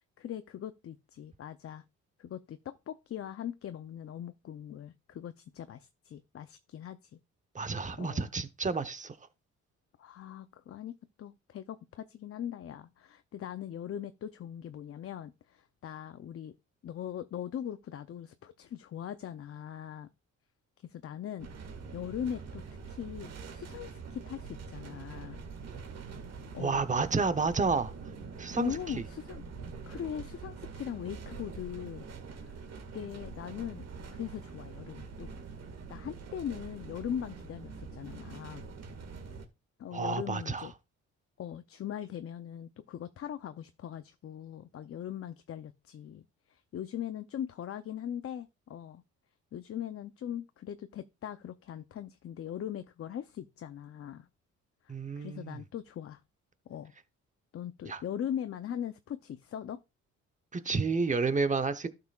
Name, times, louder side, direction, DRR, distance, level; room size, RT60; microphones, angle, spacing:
voice 1, 0.2-1.8 2.2-7.2 8.0-8.3 10.0-16.5 16.8-20.1 20.8-21.5 21.9-22.6 22.9-25.4 26.5-26.8 28.6-29.4 29.9-32.0 32.4-32.6 32.9-35.3 35.9-38.6 39.8-40.7 41.4-49.0 49.5-54.3 54.8-56.2 56.7-56.9 57.5-59.8, left 9 dB, 50° left, 0.6 m, -40 dB
voice 2, 7.5-9.2 26.6-27.9 28.4-29.0 39.9-40.7 54.9-55.6 57.9-58.0 60.5-61.9, right 4 dB, 25° right, 0.9 m, -30 dB
sound 1, 21.4-39.5, right 5 dB, 60° right, 2.0 m, -45 dB
12.0 x 6.7 x 2.4 m
cardioid pair, 90°, 30 cm